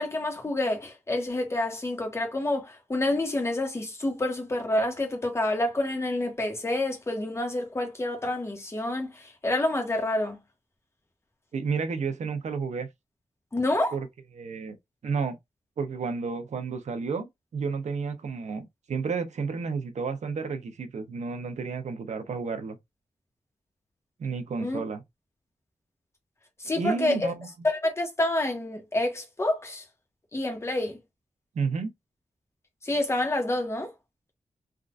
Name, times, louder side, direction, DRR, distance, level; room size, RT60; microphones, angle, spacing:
voice 1, 0.0-10.4 13.5-14.0 24.6-24.8 26.6-27.3 27.6-29.8 30.3-31.0 32.8-33.9, left 1 dB, 20° left, 1.0 m, -28 dB
voice 2, 11.5-12.9 13.9-14.1 14.3-14.8 15.0-15.4 15.8-22.8 24.2-25.0 26.8-27.5 31.5-31.9, right 5 dB, 70° right, 0.8 m, -31 dB
3.6 x 2.5 x 2.4 m
wide cardioid pair, 150°, 12 cm